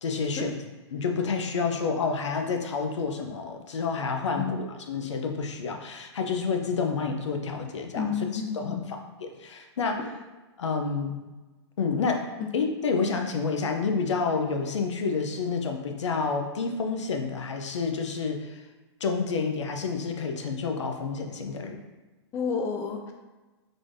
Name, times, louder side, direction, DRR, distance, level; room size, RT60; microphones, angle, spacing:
voice 1, 0.0-0.6 0.9-10.1 10.6-11.2 11.8-18.6 19.0-21.8, left 5 dB, 85° left, 3 dB, 0.6 m, -29 dB
voice 2, 7.9-8.8 10.0-10.1 12.4-12.5 22.3-23.1, left 6 dB, 20° left, 3 dB, 0.4 m, -30 dB
3.9 x 2.5 x 3.2 m, 1.2 s
hypercardioid pair, 135°, 15 cm